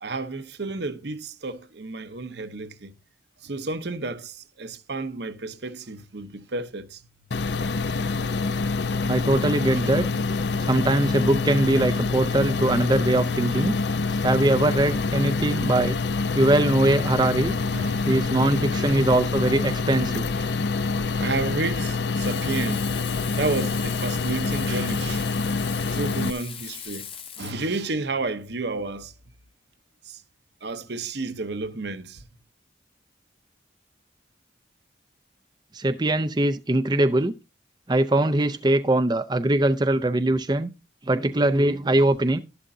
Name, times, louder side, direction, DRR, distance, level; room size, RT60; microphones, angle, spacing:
voice 1, 0.0-2.9 3.4-7.0 9.3-9.5 9.7-9.9 17.6-19.1 20.4-25.4 25.9-27.1 27.4-29.1 30.0-30.2 30.6-32.3, right 3 dB, 60° right, 0.9 m, -32 dB
sound 1, 7.3-26.3, left 4 dB, 65° left, 0.6 m, -26 dB
voice 2, 9.1-10.1 10.6-13.7 14.2-16.0 16.3-17.6 18.1-20.3 35.7-37.3 37.9-40.7 41.1-42.4, right 1 dB, 20° right, 0.5 m, -22 dB
Frying (food), 22.2-27.5, left 8 dB, 30° left, 0.9 m, -39 dB
12.0 x 11.0 x 2.7 m
head